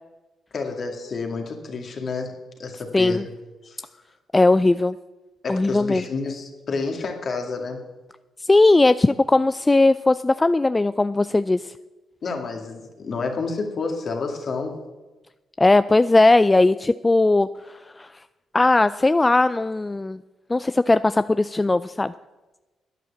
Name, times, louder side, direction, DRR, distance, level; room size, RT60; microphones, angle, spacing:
voice 1, 0.5-3.3 3.6-4.0 5.4-7.8 12.2-14.8, left 4 dB, 55° left, 3 dB, 2.2 m, -29 dB
voice 2, 4.3-5.0 5.5-6.0 8.5-11.7 15.6-18.1 18.5-20.2 20.5-22.1, left 2 dB, 25° left, 14 dB, 0.3 m, -18 dB
11.0 x 9.3 x 7.2 m, 1.1 s
supercardioid pair, 55°, 0 cm